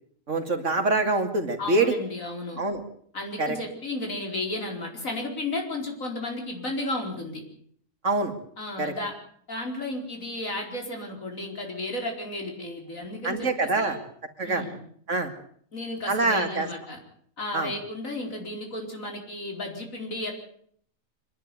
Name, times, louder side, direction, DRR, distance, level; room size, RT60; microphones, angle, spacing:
voice 1, 0.3-1.9 2.6-2.8 3.4-3.6 8.0-8.3 8.8-8.9 13.2-14.0 14.4-14.7 15.1-15.3 16.1-16.7 17.5-17.7, right 3 dB, 65° right, 6 dB, 2.7 m, -25 dB
voice 2, 1.6-2.6 3.1-7.4 8.6-9.1 9.5-14.0 14.4-14.8 15.7-17.0 17.4-20.3, left 2 dB, 85° left, 2 dB, 5.1 m, -33 dB
25.5 x 11.0 x 9.5 m, 0.63 s
omnidirectional pair, 1.4 m